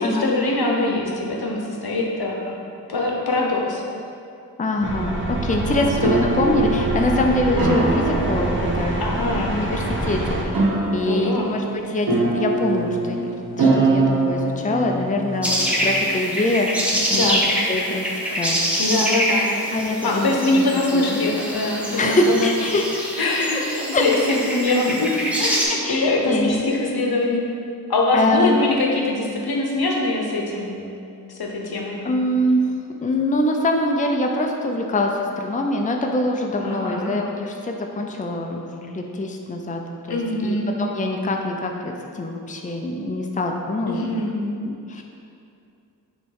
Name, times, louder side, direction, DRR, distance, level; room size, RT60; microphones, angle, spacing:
voice 1, 0.0-2.6 2.9-3.8 5.7-5.9 9.0-9.6 11.1-11.5 17.1-17.4 18.8-19.5 20.0-22.5 23.2-27.4 27.9-30.9 31.4-32.0 36.6-37.1 40.1-40.7 43.9-44.4, left 2 dB, 70° left, -1 dB, 0.9 m, -23 dB
voice 2, 4.6-10.7 10.9-13.3 13.6-17.4 17.7-18.1 18.3-18.8 19.7-20.6 20.9-21.2 22.0-22.9 23.9-24.0 25.7-26.7 28.1-28.5 32.0-32.7 33.0-39.8 40.1-44.1 44.6-45.0, left 1 dB, 20° left, 2 dB, 0.5 m, -24 dB
sound 1, 4.8-10.4, right 2 dB, 30° right, 0.9 m, -26 dB
sound 2, 5.7-16.2, right 2 dB, 65° right, 1.1 m, -24 dB
sound 3, 15.4-25.6, equal, 5° right, 1.3 m, -25 dB
6.5 x 3.2 x 4.7 m, 2.5 s
cardioid pair, 45°, 38 cm